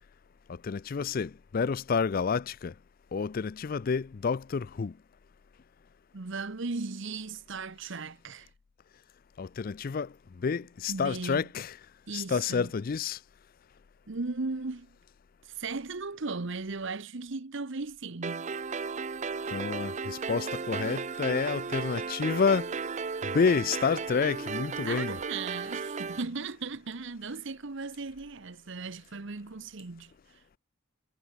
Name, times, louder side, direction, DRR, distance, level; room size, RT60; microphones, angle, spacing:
voice 1, 0.5-2.7 3.1-4.9 9.4-10.1 10.4-11.8 12.1-13.2 19.5-22.7 23.2-25.2, left 5 dB, 45° left, 0.4 m, -29 dB
voice 2, 6.1-8.5 10.9-11.5 12.1-12.7 14.1-14.9 15.6-18.6 24.8-30.1, right 3 dB, 60° right, 1.0 m, -37 dB
sound 1, 18.2-26.2, right 5 dB, 35° right, 0.5 m, -35 dB
head